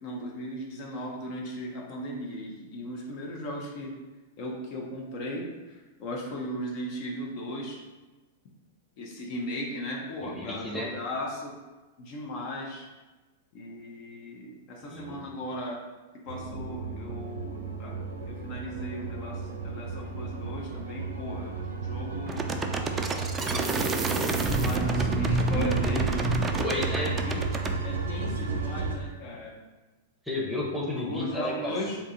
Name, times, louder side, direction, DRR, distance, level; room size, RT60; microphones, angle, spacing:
voice 1, 0.0-3.9 4.4-7.8 9.0-11.6 12.0-12.9 13.5-15.8 16.1-17.9 18.3-22.5 23.4-26.3 27.0-27.4 27.8-29.5 30.9-32.0, equal, 45° left, -2 dB, 0.7 m, -37 dB
voice 2, 10.2-10.9 14.8-15.2 26.6-27.1 30.2-31.8, left 1 dB, 5° right, -3 dB, 0.8 m, -32 dB
sound 1, 16.3-29.0, right 4 dB, 70° right, 0.5 m, -34 dB
sound 2, 22.3-27.7, right 3 dB, 20° right, 0.3 m, -28 dB
2.8 x 2.3 x 4.2 m, 1.2 s
figure-of-eight pair, 100°, 0 cm